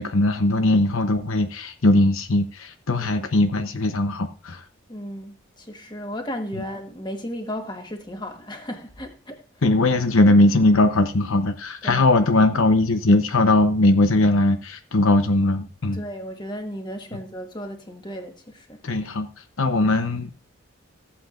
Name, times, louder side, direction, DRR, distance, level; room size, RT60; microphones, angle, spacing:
voice 1, 0.0-4.7 6.5-6.6 9.6-16.0 17.1-17.2 18.8-20.3, left 2 dB, 75° left, 0.9 m, -20 dB
voice 2, 3.0-3.3 4.9-9.4 11.8-12.1 15.9-18.8, equal, 20° left, 1.4 m, -34 dB
15.0 x 8.6 x 2.5 m
head